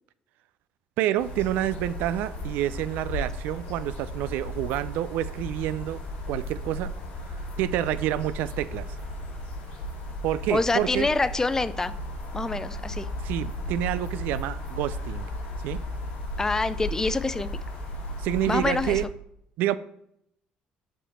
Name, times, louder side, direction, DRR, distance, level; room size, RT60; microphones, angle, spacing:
voice 1, 1.0-6.0 6.3-6.9 7.6-8.9 10.2-11.1 13.2-15.3 15.6-15.8 18.2-19.1 19.6-19.8, right 13 dB, 80° right, 15 dB, 0.3 m, -28 dB
sound 1, 1.2-19.0, left 1 dB, 85° left, 2.3 m, -35 dB
voice 2, 10.5-11.9 12.3-13.1 16.4-17.5 18.5-19.0, left 3 dB, 15° left, 15 dB, 0.3 m, -26 dB
5.1 x 5.0 x 4.2 m, 0.74 s
cardioid pair, 100°, 3 cm